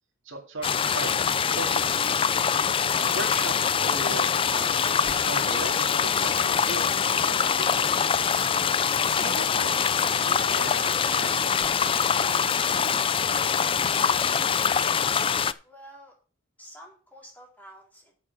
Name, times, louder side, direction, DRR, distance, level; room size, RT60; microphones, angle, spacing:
voice 1, 0.2-1.2 1.5-2.3 2.9-8.0 9.1-13.0, right 2 dB, 70° right, -2 dB, 2.5 m, -38 dB
sound 1, 0.6-15.5, left 7 dB, 25° left, 0.4 m, -24 dB
voice 2, 15.6-16.1 16.6-18.1, equal, 10° left, -2 dB, 4.1 m, -48 dB
8.4 x 7.4 x 6.0 m, 0.38 s
head